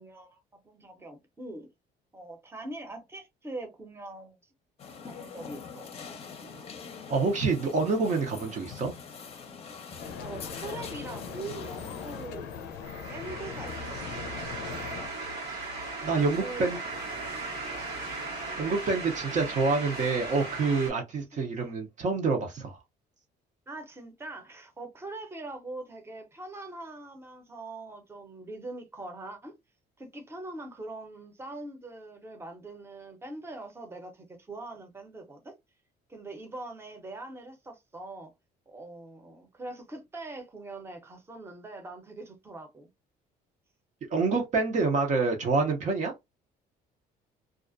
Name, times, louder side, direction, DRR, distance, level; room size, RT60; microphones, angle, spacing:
voice 1, 0.0-1.7 2.1-4.4 4.9-5.9 10.2-12.5 13.1-14.1 16.0-16.8 21.3-21.7 23.7-29.5 30.0-35.5 36.1-38.3 38.7-42.9, right 2 dB, 15° right, 0.7 m, -42 dB
sound 1, 4.8-12.3, left 5 dB, 35° left, 0.6 m, -44 dB
voice 2, 7.1-8.9 16.0-16.8 18.6-22.8 44.1-46.1, right 4 dB, 45° right, 0.6 m, -27 dB
sound 2, 10.0-15.1, left 6 dB, 90° left, 0.5 m, -40 dB
sound 3, 10.8-20.9, right 3 dB, 90° right, 1.1 m, -38 dB
2.4 x 2.1 x 2.5 m
cardioid pair, 110°, 17 cm